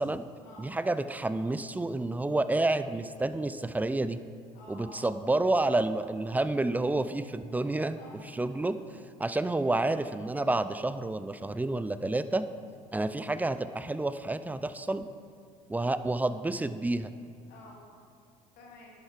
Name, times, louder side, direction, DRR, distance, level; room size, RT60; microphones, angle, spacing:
voice 1, 0.6-4.2 4.7-8.0 8.3-8.7 9.2-12.4 12.9-15.1 15.7-17.1, right 2 dB, 10° right, 12 dB, 0.4 m, -29 dB
voice 2, 4.5-5.2 7.4-9.0 17.5-17.8 18.5-18.9, left 2 dB, 55° left, -4 dB, 2.7 m, -52 dB
10.5 x 6.7 x 4.7 m, 2.2 s
figure-of-eight pair, 60°, 19 cm